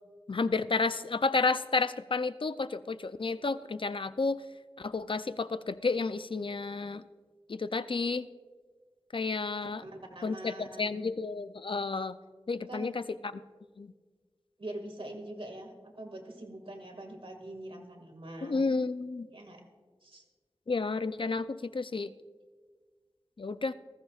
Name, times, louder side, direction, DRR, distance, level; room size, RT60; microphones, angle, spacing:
voice 1, 0.3-4.4 4.8-7.0 7.5-8.3 9.1-9.8 10.2-12.2 12.5-13.0 13.8-13.9 18.4-19.3 20.7-22.1 23.4-23.7, left 4 dB, 60° left, 12 dB, 0.5 m, -31 dB
voice 2, 9.8-11.0 12.7-12.9 14.6-18.8 19.3-19.6 20.0-20.2, right 1 dB, 65° right, 3 dB, 2.1 m, -44 dB
19.5 x 14.5 x 2.4 m, 1.5 s
wide cardioid pair, 45°, 10 cm